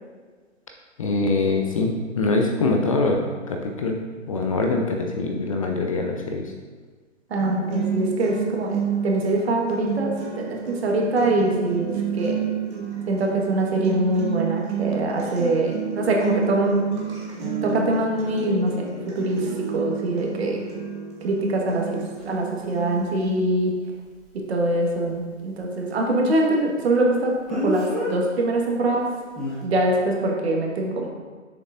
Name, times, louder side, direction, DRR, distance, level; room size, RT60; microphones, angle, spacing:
voice 1, 1.0-3.2 3.5-4.0 4.3-6.5, left 3 dB, 30° left, 2 dB, 0.4 m, -23 dB
voice 2, 7.3-8.8 9.0-12.4 13.1-16.9 17.6-18.9 19.1-19.5 19.7-20.6 21.2-23.7 24.5-29.1 29.6-31.1, right 1 dB, 55° right, 0 dB, 1.5 m, -23 dB
sound 1, 7.4-23.4, right 7 dB, 15° right, 1.1 m, -30 dB
Speech, 22.2-22.3 27.5-28.1 29.4-29.6, left 1 dB, ahead, 1.3 m, -27 dB
6.9 x 6.7 x 2.5 m, 1.5 s
figure-of-eight pair, 135°, 37 cm